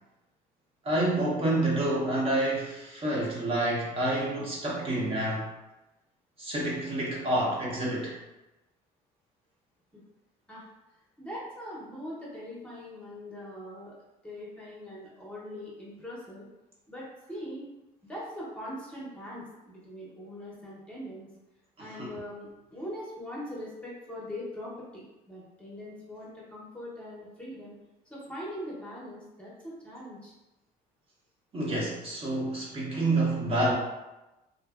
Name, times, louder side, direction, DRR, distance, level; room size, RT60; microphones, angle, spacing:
voice 1, 0.8-5.5 6.4-8.2 21.8-22.1 31.5-33.7, right 1 dB, 35° right, -5 dB, 0.8 m, -28 dB
voice 2, 11.2-13.9 14.2-16.5 16.9-17.7 18.0-21.3 21.8-27.7 28.1-30.3, equal, 5° left, -6 dB, 0.8 m, -41 dB
2.6 x 2.6 x 2.4 m, 1.0 s
cardioid pair, 110°, 17 cm